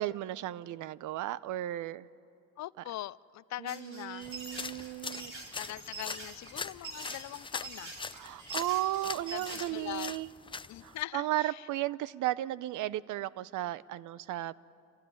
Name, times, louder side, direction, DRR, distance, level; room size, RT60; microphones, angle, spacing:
voice 1, 0.0-2.1 3.6-5.3 8.1-10.3 10.8-14.6, right 14 dB, 85° right, 0.6 m, -35 dB
voice 2, 2.6-4.3 5.1-5.2 5.6-7.9 9.3-10.1 10.7-11.6, left 14 dB, 65° left, 0.5 m, -41 dB
sound 1, 3.7-9.6, right 3 dB, 45° right, 4.5 m, -45 dB
sound 2, 4.2-11.0, left 4 dB, 15° left, 0.5 m, -42 dB
28.0 x 15.5 x 9.7 m
cardioid pair, 90°, 30 cm